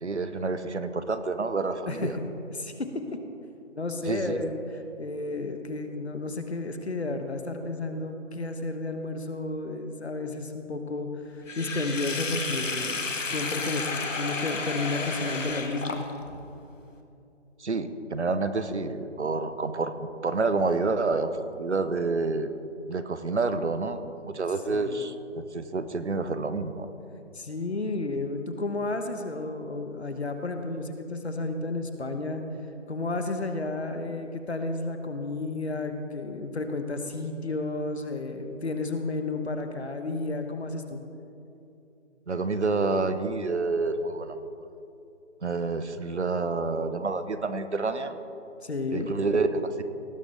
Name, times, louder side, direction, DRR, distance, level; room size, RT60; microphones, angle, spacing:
voice 1, 0.0-2.1 4.1-4.5 17.6-22.5 22.9-24.1 24.3-26.9 42.3-44.5 45.4-48.2 48.9-49.8, right 3 dB, 65° right, 11 dB, 0.8 m, -28 dB
voice 2, 1.9-2.3 2.5-3.2 3.7-16.1 24.7-25.0 27.3-32.4 32.9-41.0 48.6-49.1, left 2 dB, 60° left, 6 dB, 1.1 m, -32 dB
Sink (filling or washing), 11.5-16.4, left 3 dB, 85° left, 1.4 m, -32 dB
18.0 x 9.2 x 3.4 m, 2.7 s
figure-of-eight pair, 180°, 37 cm